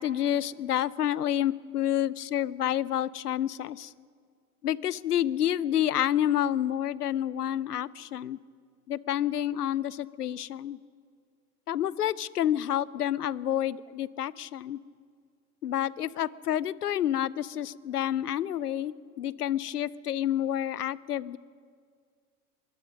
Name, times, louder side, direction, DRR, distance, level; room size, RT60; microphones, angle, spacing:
voice 1, 0.0-3.9 4.6-8.4 8.9-10.8 11.7-14.8 15.6-21.4, left 11 dB, 85° left, 21 dB, 0.7 m, -29 dB
24.0 x 22.5 x 5.2 m, 2.1 s
hypercardioid pair, 90°, 45 cm